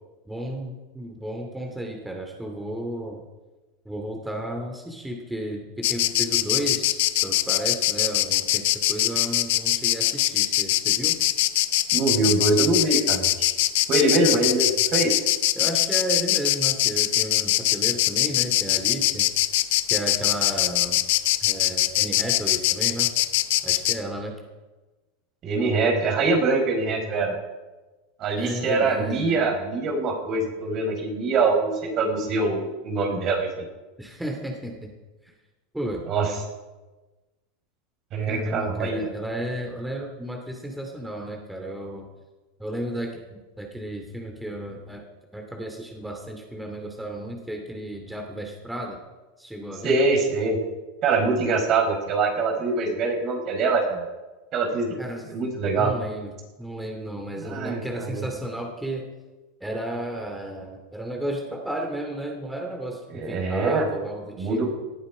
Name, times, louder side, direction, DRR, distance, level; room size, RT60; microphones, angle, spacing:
voice 1, 0.3-3.2 3.8-11.2 15.5-19.3 19.9-21.0 21.4-23.1 23.6-24.4 28.4-29.4 34.0-34.9 35.2-35.3 35.7-36.0 38.3-42.1 42.6-45.0 45.3-49.0 49.4-50.0 55.0-55.3 55.7-56.3 56.6-59.1 59.6-64.7, right 1 dB, 5° right, 1 dB, 2.5 m, -33 dB
Insect, 5.8-24.0, left 16 dB, 70° left, 0.9 m, -22 dB
voice 2, 11.9-13.5 13.9-15.2 25.4-27.3 28.2-33.5 36.1-36.3 38.1-39.1 49.8-50.6 51.0-54.0 54.5-55.0 55.3-55.9 57.4-58.2 63.2-63.8 64.4-64.7, right 3 dB, 45° right, 2 dB, 5.1 m, -23 dB
19.0 x 11.5 x 5.0 m, 1.2 s
hypercardioid pair, 105°, 0 cm